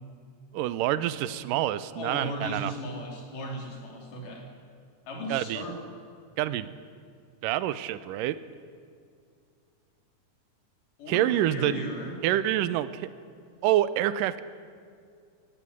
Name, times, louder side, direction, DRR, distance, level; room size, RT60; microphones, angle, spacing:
voice 1, 0.5-2.7 5.3-5.6 6.4-6.7 7.4-8.4 11.1-11.8 12.2-13.1 13.6-14.4, right 13 dB, 85° right, 15 dB, 2.3 m, -27 dB
voice 2, 2.0-4.5 5.1-5.8 11.0-12.1, equal, 70° left, 1 dB, 4.7 m, -36 dB
18.0 x 16.0 x 9.7 m, 2.2 s
omnidirectional pair, 3.9 m